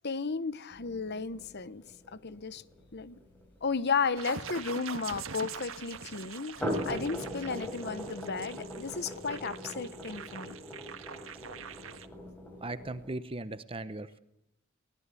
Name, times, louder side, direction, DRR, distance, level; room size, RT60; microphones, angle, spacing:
voice 1, 0.0-1.9 2.1-2.6 2.9-3.2 3.6-10.6, left 5 dB, 55° left, 1.0 m, -34 dB
sound 1, 0.7-5.3 6.4-13.1, equal, 10° left, 5.7 m, -40 dB
sound 2, 4.2-12.1, right 6 dB, 80° right, 1.5 m, -44 dB
voice 2, 12.6-14.2, right 2 dB, 25° right, 0.8 m, -38 dB
23.5 x 18.5 x 8.4 m
head